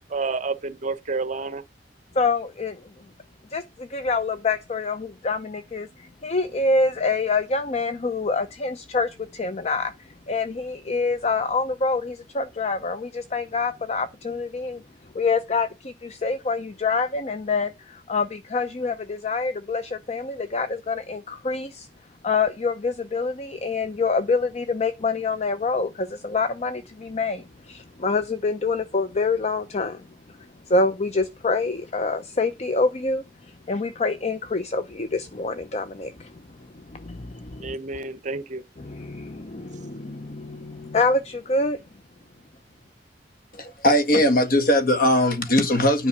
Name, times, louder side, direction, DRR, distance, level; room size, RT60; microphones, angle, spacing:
voice 1, 0.0-1.6 37.6-38.6, right 3 dB, 45° right, 0.8 m, -29 dB
voice 2, 2.1-2.8 3.5-14.8 15.1-21.9 22.2-30.0 30.7-36.4 36.7-37.8 38.8-41.8, left 3 dB, 40° left, 0.6 m, -26 dB
voice 3, 43.5-46.1, left 1 dB, 55° left, 1.7 m, -19 dB
10.0 x 5.4 x 7.3 m
head